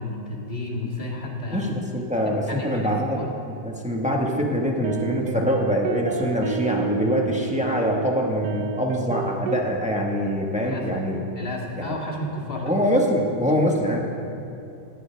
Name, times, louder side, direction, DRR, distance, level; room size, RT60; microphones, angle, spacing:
voice 1, 0.0-1.7 2.5-3.3 10.7-10.9 11.4-12.7, left 2 dB, 30° left, -2 dB, 2.2 m, -32 dB
voice 2, 1.5-11.2 11.8-12.0 12.6-14.0, equal, 5° right, -1 dB, 1.5 m, -24 dB
sound 1, 4.3-9.7, right 8 dB, 65° right, 1.1 m, -31 dB
18.5 x 16.0 x 3.6 m, 2.8 s
omnidirectional pair, 2.0 m